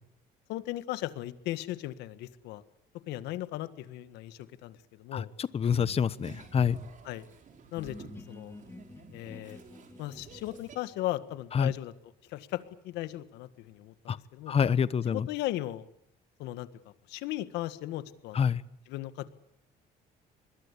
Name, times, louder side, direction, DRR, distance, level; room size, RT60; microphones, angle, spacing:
voice 1, 0.5-2.6 3.1-5.3 7.1-7.2 7.7-8.5 9.1-9.6 10.0-11.9 12.3-14.5 15.1-15.9 16.4-18.5 18.9-19.3, left 15 dB, 90° left, 13 dB, 1.8 m, -37 dB
voice 2, 5.1-6.8 11.5-11.7 14.1-14.2 14.5-15.3 18.3-18.6, left 7 dB, 35° left, 17 dB, 1.1 m, -27 dB
sound 1, 5.6-10.8, right 4 dB, 50° right, 5.3 m, -48 dB
sound 2, 7.7-13.4, left 2 dB, 15° left, 2.5 m, -52 dB
25.5 x 21.5 x 8.5 m, 0.79 s
cardioid pair, 110°, 17 cm